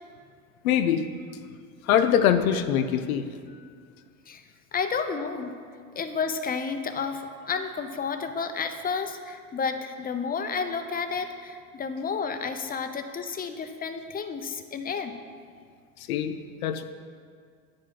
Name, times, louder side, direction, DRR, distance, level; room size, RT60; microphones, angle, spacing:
voice 1, 0.6-1.1 1.8-3.3 16.1-16.8, left 9 dB, 90° left, 9 dB, 0.6 m, -23 dB
voice 2, 4.7-5.5 6.0-15.1, left 5 dB, 20° left, 7 dB, 0.7 m, -31 dB
9.7 x 5.1 x 5.7 m, 2.1 s
hypercardioid pair, 80°, 40 cm